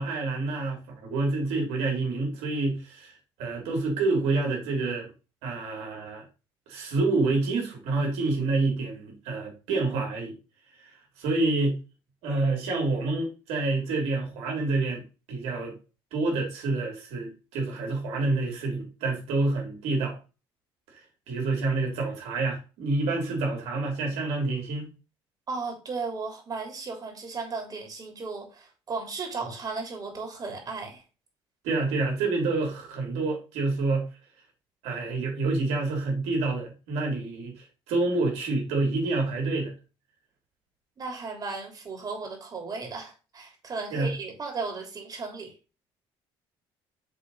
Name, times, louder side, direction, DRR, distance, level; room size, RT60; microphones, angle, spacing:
voice 1, 0.0-3.1 3.4-5.1 5.4-6.2 6.7-10.3 10.8-10.9 11.2-11.8 12.2-15.0 15.3-15.8 16.1-20.2 21.3-24.9 31.6-34.1 34.8-39.7 43.9-44.1, right 3 dB, 85° right, 3.5 m, -28 dB
voice 2, 25.5-31.0 41.0-45.5, right 4 dB, 40° right, 3.5 m, -35 dB
7.0 x 4.0 x 5.6 m
cardioid pair, 95°, 10 cm